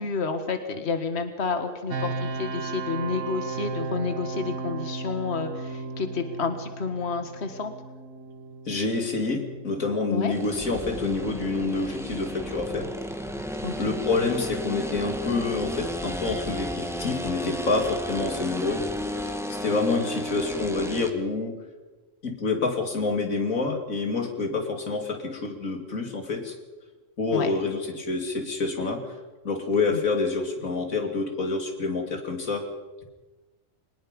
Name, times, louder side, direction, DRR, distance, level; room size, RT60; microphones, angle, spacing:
voice 1, 0.0-7.7 10.1-10.3 13.6-13.7 27.3-27.5 29.9-30.0, left 4 dB, 55° left, 8 dB, 1.9 m, -30 dB
sound 1, 1.9-14.7, right 3 dB, 70° right, 1.7 m, -37 dB
voice 2, 8.7-12.9 13.8-18.8 19.2-21.5 22.2-26.5 27.2-29.0 29.4-32.7, left 3 dB, 90° left, 4 dB, 3.3 m, -27 dB
sound 2, 10.3-21.1, equal, ahead, 1.7 m, -33 dB
24.0 x 20.0 x 5.4 m, 1.2 s
omnidirectional pair, 1.4 m